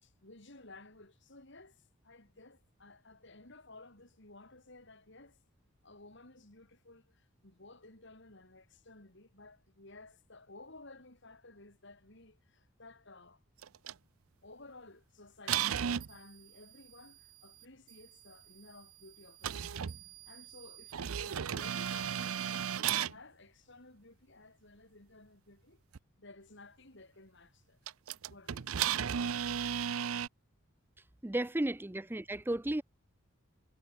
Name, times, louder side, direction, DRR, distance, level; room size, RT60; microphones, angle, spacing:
voice 1, 0.0-5.4 5.8-13.4 14.4-19.9 20.2-25.8 26.2-27.8 28.3-28.9, left 2 dB, 55° left, 4.2 m, -55 dB
sound 1, 13.6-13.9 15.5-16.1 19.4-23.2 26.0-26.1 27.9-30.3, right 9 dB, 80° right, 0.6 m, -34 dB
voice 2, 31.2-32.8, right 1 dB, 10° right, 0.5 m, -33 dB
head